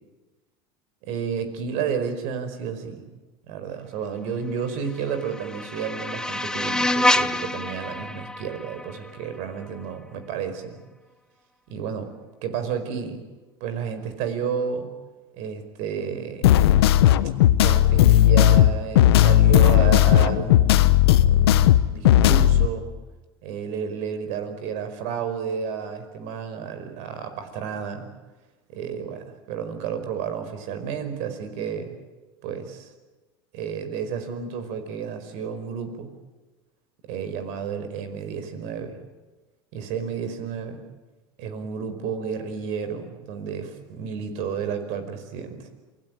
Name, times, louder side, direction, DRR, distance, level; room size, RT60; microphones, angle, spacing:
voice 1, 1.0-3.1 3.5-10.8 11.7-12.1 12.4-13.2 13.6-14.9 15.3-16.6 17.6-21.0 21.2-22.9 23.4-28.1 28.7-31.9 32.4-32.9 33.5-36.1 37.0-39.0 39.7-40.8 41.4-45.7, right 7 dB, 65° right, 9 dB, 5.0 m, -31 dB
sound 1, 4.8-9.8, left 1 dB, 5° left, 1.0 m, -27 dB
sound 2, 16.4-22.7, left 13 dB, 85° left, 1.2 m, -16 dB
28.0 x 20.0 x 9.1 m, 1.2 s
supercardioid pair, 105°, 13 cm